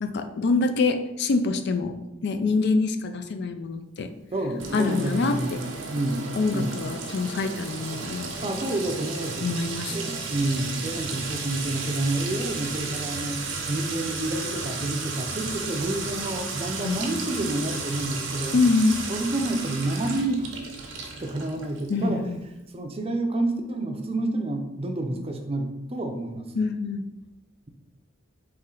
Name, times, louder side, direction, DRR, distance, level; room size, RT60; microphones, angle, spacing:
voice 1, 0.0-1.9 2.2-4.1 4.7-5.4 6.4-8.3 9.4-10.0 16.8-17.0 18.5-19.0 21.9-22.4 26.6-27.1, left 3 dB, 60° left, 7 dB, 0.4 m, -25 dB
voice 2, 4.3-5.5 5.9-6.3 6.5-6.7 8.4-9.5 9.9-18.6 19.1-20.5 20.8-22.2 22.7-26.5, right 2 dB, 30° right, 5 dB, 0.5 m, -29 dB
Sink (filling or washing) / Trickle dribble / Fill (with liquid), 4.6-22.0, right 4 dB, 80° right, 0.8 m, -34 dB
4.3 x 3.2 x 3.8 m, 0.96 s
head